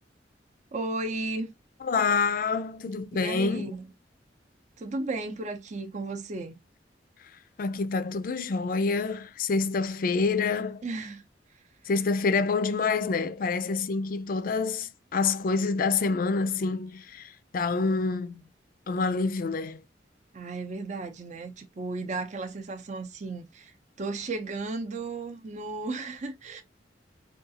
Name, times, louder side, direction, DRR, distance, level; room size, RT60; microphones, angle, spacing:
voice 1, 0.7-1.5 3.1-3.8 4.8-6.6 10.8-11.2 20.3-26.6, right 3 dB, 40° right, 0.6 m, -34 dB
voice 2, 1.8-3.7 7.6-10.8 11.9-18.4 18.9-19.8, left 4 dB, 50° left, 0.4 m, -27 dB
3.6 x 2.3 x 2.7 m
head